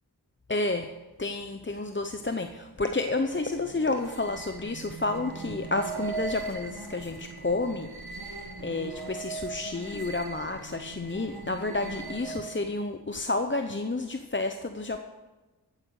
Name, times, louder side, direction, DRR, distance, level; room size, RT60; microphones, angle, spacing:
voice 1, 0.5-0.9 1.2-15.0, left 3 dB, 30° left, 7 dB, 0.8 m, -30 dB
sound 1, 2.9-12.7, right 4 dB, 65° right, 1.8 m, -40 dB
15.0 x 8.9 x 6.5 m, 1.2 s
wide cardioid pair, 40°, 39 cm